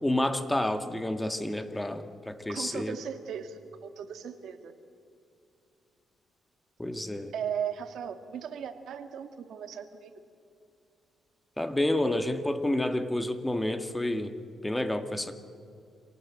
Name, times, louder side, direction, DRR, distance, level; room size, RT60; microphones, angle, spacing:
voice 1, 0.0-3.0 6.8-7.3 11.6-14.4 14.6-15.4, left 1 dB, 10° left, 9 dB, 1.7 m, -29 dB
voice 2, 2.5-4.7 7.3-10.1, right 8 dB, 75° right, 8 dB, 1.9 m, -37 dB
26.5 x 18.0 x 8.7 m, 2.6 s
cardioid pair, 90°, 0 cm